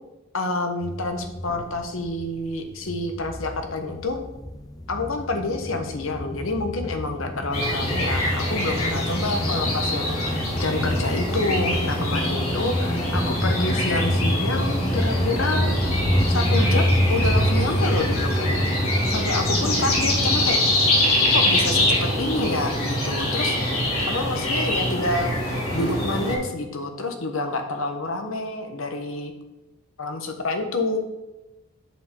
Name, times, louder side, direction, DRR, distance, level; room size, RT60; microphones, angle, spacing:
voice 1, 0.3-4.2 4.9-15.8 16.3-18.6 19.1-20.6 21.3-23.7 24.1-29.3 30.0-31.0, left 2 dB, 65° left, 5 dB, 1.1 m, -28 dB
sound 1, 0.8-2.5 2.7-20.5, equal, 15° left, 0.6 m, -27 dB
sound 2, 7.5-26.4, left 1 dB, 80° left, 2.9 m, -24 dB
7.8 x 5.3 x 5.3 m, 1.0 s
head